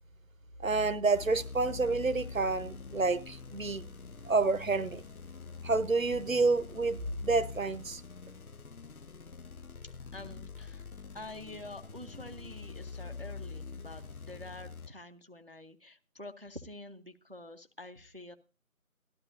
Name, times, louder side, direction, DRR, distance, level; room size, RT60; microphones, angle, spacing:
voice 1, 0.6-3.8 4.3-5.0 5.6-8.0, right 3 dB, 65° right, 0.9 m, -29 dB
sound 1, 1.1-14.9, left 4 dB, 75° left, 0.8 m, -45 dB
voice 2, 10.1-10.8 11.1-18.4, left 2 dB, 40° right, 0.6 m, -47 dB
17.5 x 12.0 x 2.6 m
figure-of-eight pair, 170°, 43 cm